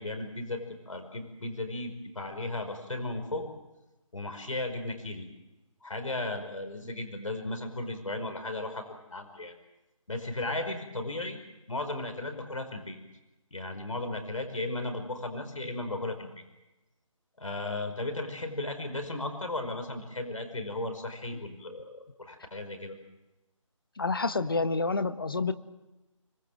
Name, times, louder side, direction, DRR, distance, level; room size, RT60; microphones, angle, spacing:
voice 1, 0.0-3.5 4.1-5.3 5.8-9.5 10.1-11.4 11.7-13.0 13.5-16.4 17.4-23.0, left 2 dB, 75° left, 6 dB, 5.3 m, -35 dB
voice 2, 24.0-25.5, left 3 dB, 45° left, 11 dB, 1.3 m, -28 dB
25.0 x 23.0 x 7.7 m, 1.0 s
figure-of-eight pair, 175°, 17 cm